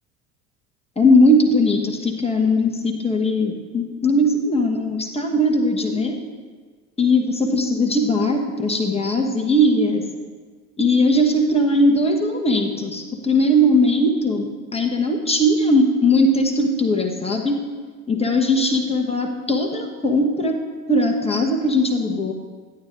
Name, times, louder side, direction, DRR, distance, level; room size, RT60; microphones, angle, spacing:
voice 1, 1.0-6.1 7.0-10.0 10.8-17.6 18.1-20.5 20.9-22.3, left 1 dB, 15° left, 3 dB, 1.3 m, -19 dB
13.5 x 9.0 x 2.6 m, 1.5 s
figure-of-eight pair, 70°, 42 cm